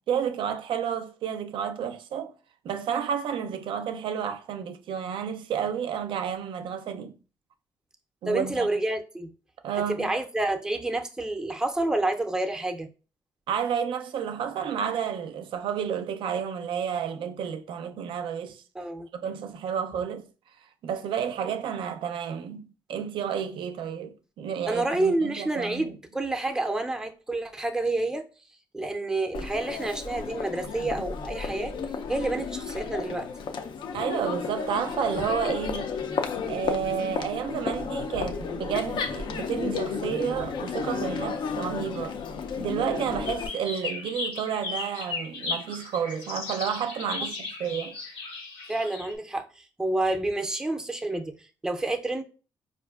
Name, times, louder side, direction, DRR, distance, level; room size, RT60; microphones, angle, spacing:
voice 1, 0.0-2.3 2.6-7.2 8.2-8.7 9.6-10.1 13.5-18.6 19.1-20.3 20.8-26.0 33.9-35.9 36.5-42.2 42.6-47.9, right 8 dB, 75° right, 0.4 m, -31 dB
voice 2, 8.3-9.3 10.0-12.9 18.7-19.1 24.7-28.2 28.7-31.7 32.1-33.3 48.7-51.3 51.6-52.2, right 2 dB, 10° right, 0.4 m, -28 dB
Crowd, 29.3-43.5, left 5 dB, 65° left, 0.4 m, -32 dB
sound 1, 43.3-49.1, left 3 dB, 85° left, 0.9 m, -36 dB
4.4 x 2.4 x 2.3 m
cardioid pair, 85°, 9 cm